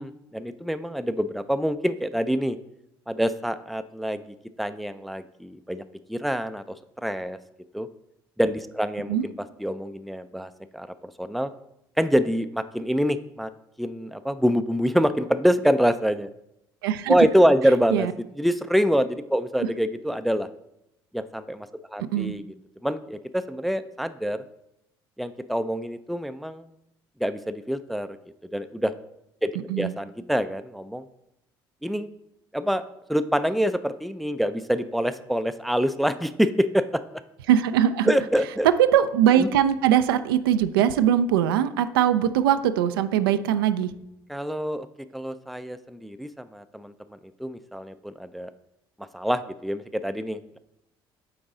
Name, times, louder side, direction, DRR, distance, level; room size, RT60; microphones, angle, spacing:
voice 1, 0.0-2.6 3.1-5.8 6.1-6.6 7.0-7.4 7.7-7.9 8.4-9.3 9.6-11.5 12.0-13.5 13.8-16.3 17.1-18.1 18.4-20.5 21.1-22.4 22.8-24.4 25.2-26.7 27.2-28.2 28.5-28.9 29.4-29.5 29.8-31.0 31.8-32.1 32.5-32.8 33.1-37.0 38.1-38.7 39.4-39.5 44.3-44.9 45.1-46.9 47.4-48.5 49.1-50.6, equal, ahead, 11 dB, 0.4 m, -25 dB
voice 2, 16.8-17.1 17.9-18.1 22.1-22.3 29.7-29.9 37.5-38.1 38.6-43.9, right 10 dB, 80° right, 11 dB, 0.4 m, -21 dB
8.7 x 3.9 x 3.8 m, 0.84 s
hypercardioid pair, 55°, 12 cm